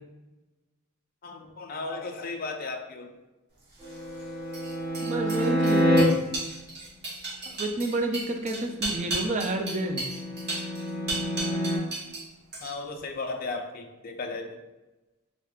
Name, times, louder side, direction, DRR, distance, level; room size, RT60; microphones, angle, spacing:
voice 1, 1.2-3.1 11.4-11.7 12.6-14.6, left 3 dB, 40° left, 4 dB, 0.4 m, -35 dB
sound 1, 3.7-12.2 12.5-13.0, right 2 dB, 50° right, 1.2 m, -35 dB
sound 2, 3.8-6.0 9.4-11.8, equal, 10° right, 1.0 m, -27 dB
voice 2, 5.0-6.1 7.5-10.1, right 2 dB, 35° right, 4 dB, 0.3 m, -29 dB
3.6 x 3.5 x 2.3 m, 1.1 s
head